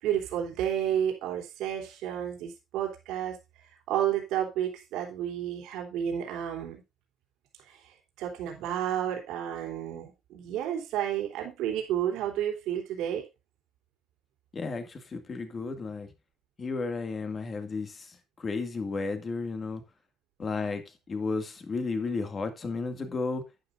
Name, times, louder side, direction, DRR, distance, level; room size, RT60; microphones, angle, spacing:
voice 1, 0.0-3.4 3.9-6.8 8.2-13.3, right 10 dB, 90° right, 3.5 m, -31 dB
voice 2, 14.5-16.1 16.6-19.8 20.4-23.4, left 4 dB, 30° left, 2.1 m, -33 dB
11.0 x 10.0 x 2.6 m
cardioid pair, 145°, 0 cm